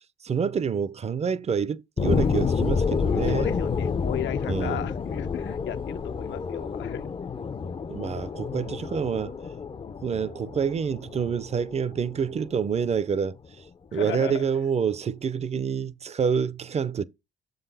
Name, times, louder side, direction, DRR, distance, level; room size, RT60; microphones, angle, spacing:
voice 1, 0.2-3.5 4.5-4.9 7.9-9.3 10.0-13.4 13.9-17.0, right 6 dB, 35° right, 0.5 m, -27 dB
sound 1, 2.0-13.0 13.4-13.5, left 5 dB, 25° left, 0.5 m, -29 dB
voice 2, 3.1-7.1 8.4-8.7 13.9-14.5, left 11 dB, 70° left, 0.6 m, -36 dB
7.3 x 4.0 x 4.1 m
cardioid pair, 90°, 20 cm